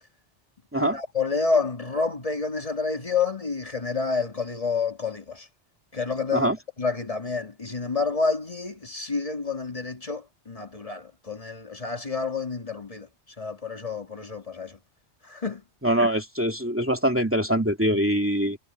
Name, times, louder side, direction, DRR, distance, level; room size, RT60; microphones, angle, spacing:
voice 1, 0.7-5.5 5.9-6.5 6.8-13.1 13.4-14.8 15.2-15.6, left 4 dB, 35° left, 2.0 m, -29 dB
voice 2, 15.8-18.6, equal, 10° right, 2.6 m, -23 dB
omnidirectional pair, 1.1 m